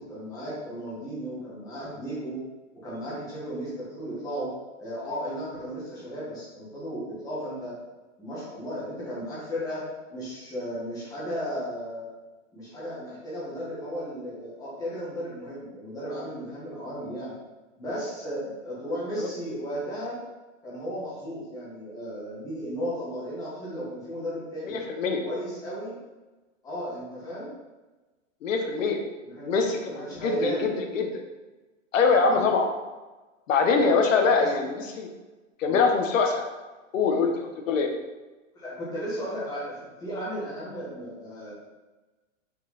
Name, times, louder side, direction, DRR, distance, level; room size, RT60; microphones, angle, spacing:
voice 1, 0.0-2.4 2.8-4.5 4.8-7.7 8.2-9.8 10.1-12.1 12.5-17.3 17.8-20.2 20.6-24.8 25.1-25.9 26.6-27.5 29.2-29.5 30.0-30.7 32.3-32.4 34.4-34.5 35.7-35.8 38.5-39.7 40.0-41.5, equal, 10° left, -8 dB, 1.7 m, -35 dB
voice 2, 24.7-25.2 28.4-29.0 29.5-31.2 31.9-32.7 33.5-35.1 35.6-36.5 36.9-37.9, left 4 dB, 80° left, 3 dB, 1.2 m, -23 dB
5.6 x 5.0 x 4.0 m, 1.2 s
supercardioid pair, 180°, 38 cm